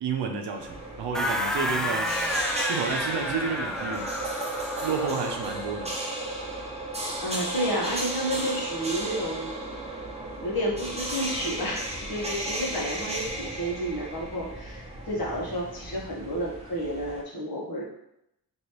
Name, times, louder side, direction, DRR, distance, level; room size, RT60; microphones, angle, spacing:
voice 1, 0.0-2.1 2.6-4.1 4.8-5.9, right 5 dB, 90° right, 4 dB, 0.6 m, -31 dB
sound 1, 0.5-17.2, right 1 dB, 15° right, 0.8 m, -34 dB
sound 2, 1.1-5.6, left 1 dB, ahead, 0.3 m, -30 dB
voice 2, 7.2-9.5 10.4-17.8, equal, 60° left, -4 dB, 1.3 m, -31 dB
3.1 x 3.0 x 2.9 m, 0.80 s
cardioid pair, 60°, 40 cm